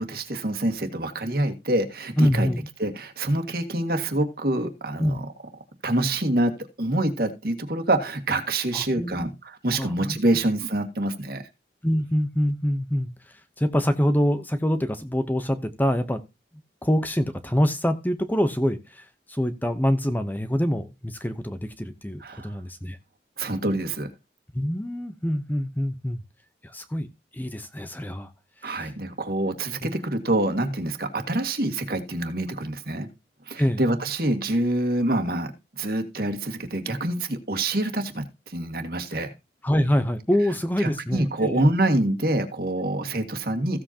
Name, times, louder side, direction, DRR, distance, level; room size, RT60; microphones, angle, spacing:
voice 1, 0.0-2.5 2.8-5.3 5.8-6.5 6.8-11.4 22.2-22.5 23.4-24.1 28.6-33.1 33.5-35.5 35.8-39.3 40.8-43.8, right 1 dB, 55° right, 1.9 m, -26 dB
voice 2, 2.2-2.6 5.0-5.2 8.7-9.3 9.7-10.2 11.8-16.2 16.8-23.0 24.5-26.2 26.6-27.1 27.3-28.3 28.6-28.9 29.8-29.9 33.6-33.8 39.6-41.7, equal, 10° left, 0.8 m, -25 dB
15.5 x 7.7 x 2.8 m
head